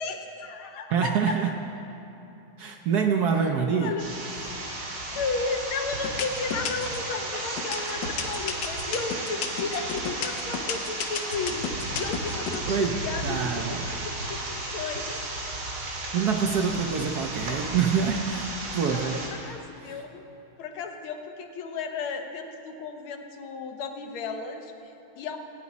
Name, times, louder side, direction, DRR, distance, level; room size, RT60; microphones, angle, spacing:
voice 1, 0.0-1.4 3.3-4.0 5.2-15.4 17.4-17.6 18.9-20.2 20.6-25.4, left 4 dB, 85° left, 5 dB, 1.7 m, -34 dB
voice 2, 0.9-1.6 2.6-4.0 12.7-13.9 15.8-18.5 18.7-19.2 19.8-19.9, right 6 dB, 65° right, 3 dB, 1.0 m, -26 dB
sound 1, 4.0-19.3, right 2 dB, 85° right, 2.9 m, -34 dB
sound 2, 5.1-5.6 6.0-7.1 7.6-12.6, left 8 dB, 70° left, 1.4 m, -32 dB
18.5 x 9.5 x 4.1 m, 2.9 s
omnidirectional pair, 2.2 m